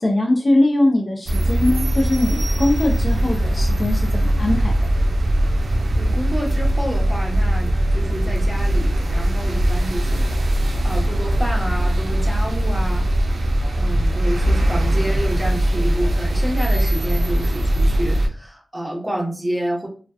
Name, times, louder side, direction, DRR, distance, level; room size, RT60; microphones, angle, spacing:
voice 1, 0.0-4.8, left 1 dB, 55° left, 2 dB, 0.6 m, -21 dB
sound 1, 1.3-18.3, right 1 dB, 85° right, 0.3 m, -20 dB
voice 2, 6.0-10.3 10.8-19.9, right 1 dB, 15° right, -1 dB, 0.9 m, -29 dB
2.4 x 2.2 x 2.3 m, 0.40 s
cardioid pair, 45°, 0 cm